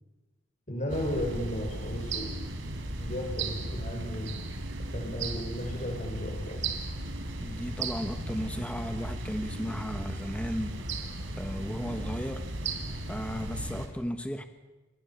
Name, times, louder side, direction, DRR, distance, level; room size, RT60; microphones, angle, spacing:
voice 1, 0.7-2.3 3.0-4.4 4.9-6.7, equal, 40° left, 1 dB, 5.7 m, -34 dB
sound 1, 0.9-13.9, right 2 dB, 70° right, 3.8 m, -36 dB
voice 2, 7.4-10.8 11.4-12.6 13.1-14.4, equal, 5° left, 7 dB, 1.3 m, -35 dB
27.5 x 23.5 x 7.2 m, 1.1 s
head